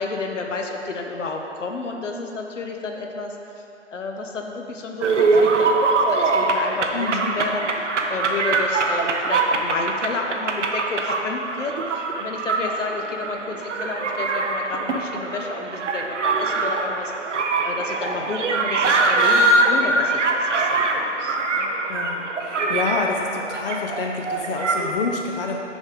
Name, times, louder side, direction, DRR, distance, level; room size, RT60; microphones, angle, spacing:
voice 1, 0.0-3.6 3.9-7.7 8.1-17.1 17.6-21.7, left 3 dB, 80° left, 2 dB, 0.9 m, -31 dB
sound 1, 5.0-24.9, right 3 dB, 70° right, 0.8 m, -23 dB
voice 2, 6.9-7.3 21.9-25.6, left 4 dB, 50° left, 1 dB, 0.7 m, -28 dB
6.3 x 5.2 x 4.8 m, 2.9 s
figure-of-eight pair, 135°, 37 cm